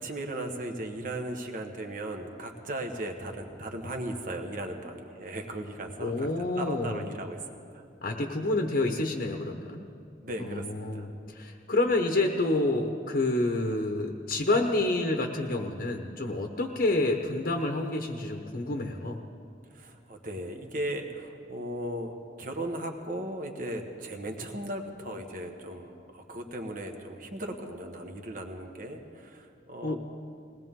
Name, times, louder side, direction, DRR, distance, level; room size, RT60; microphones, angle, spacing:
voice 1, 0.0-6.3 6.6-7.4 7.7-7.8 10.2-11.1 19.7-30.0, right 1 dB, 50° right, 4 dB, 1.4 m, -37 dB
voice 2, 6.0-7.0 8.0-9.8 10.4-19.2 29.8-30.0, left 2 dB, 55° left, 3 dB, 1.0 m, -28 dB
21.0 x 18.5 x 3.7 m, 2.5 s
head